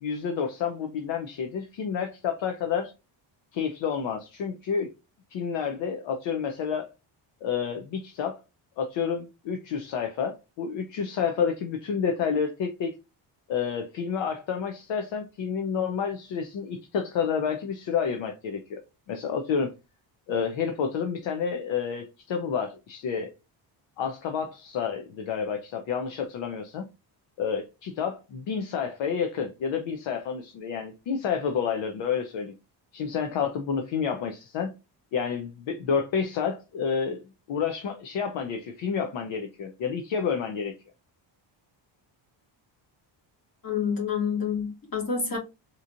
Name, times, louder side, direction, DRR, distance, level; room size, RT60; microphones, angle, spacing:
voice 1, 0.0-2.9 3.5-4.9 5.3-6.9 7.4-8.4 8.8-12.9 13.5-18.8 19.1-19.7 20.3-23.3 24.0-26.8 27.4-32.5 32.9-34.7 35.1-37.2 37.5-40.7, left 6 dB, 70° left, 0.7 m, -29 dB
voice 2, 43.6-45.4, left 6 dB, 45° left, 2.2 m, -28 dB
3.9 x 3.0 x 2.5 m
cardioid pair, 140°, 47 cm